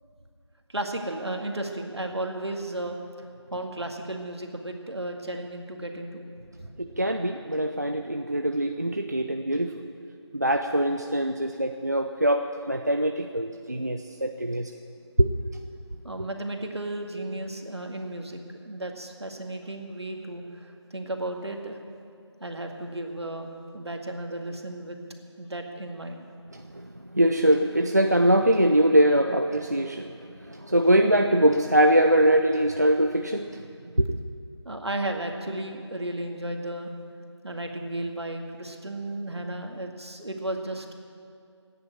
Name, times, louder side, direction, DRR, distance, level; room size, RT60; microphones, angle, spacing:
voice 1, 0.7-6.3 6.6-6.7 16.0-21.8 22.4-25.0 25.4-26.2 32.7-32.8 34.7-36.9 37.4-40.9, right 1 dB, 65° right, 3 dB, 2.0 m, -34 dB
voice 2, 7.0-9.7 10.3-14.6 15.2-15.3 27.2-30.1 30.7-33.5 34.0-34.1, right 1 dB, 35° right, 5 dB, 0.5 m, -22 dB
15.5 x 9.7 x 8.9 m, 2.4 s
figure-of-eight pair, 175°, 15 cm